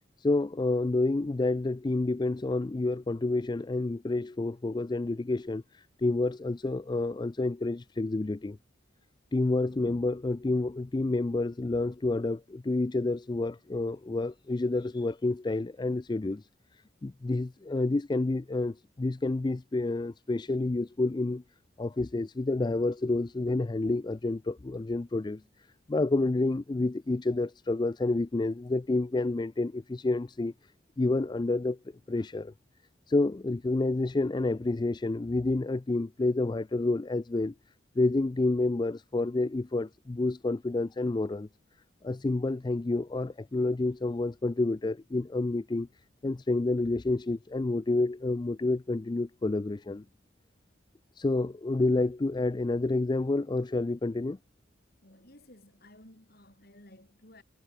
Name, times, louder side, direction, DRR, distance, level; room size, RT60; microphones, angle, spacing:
voice 1, 0.2-8.6 9.3-16.5 17.0-21.4 21.8-25.4 25.9-30.5 31.0-31.8 32.1-32.5 33.1-37.5 38.0-41.5 42.0-45.9 46.2-50.0 51.2-54.4, left 2 dB, 20° left, 0.3 m, -29 dB
voice 2, 55.0-57.4, left 1 dB, 50° left, 6.6 m, -55 dB
head